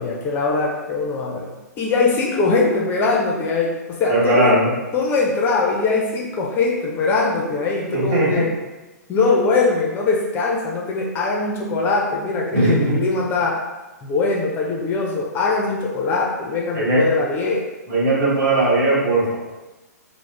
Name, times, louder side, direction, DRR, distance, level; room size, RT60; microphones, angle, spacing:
voice 1, 0.0-1.5 1.8-4.6 4.9-8.5 9.1-13.6 14.0-17.6, left 3 dB, 20° left, -2 dB, 0.4 m, -21 dB
voice 2, 4.1-4.7 7.9-8.5 12.5-13.0 16.7-17.0 17.9-19.4, right 1 dB, 40° right, -6 dB, 1.1 m, -18 dB
3.4 x 2.0 x 3.1 m, 1.1 s
figure-of-eight pair, 115°, 10 cm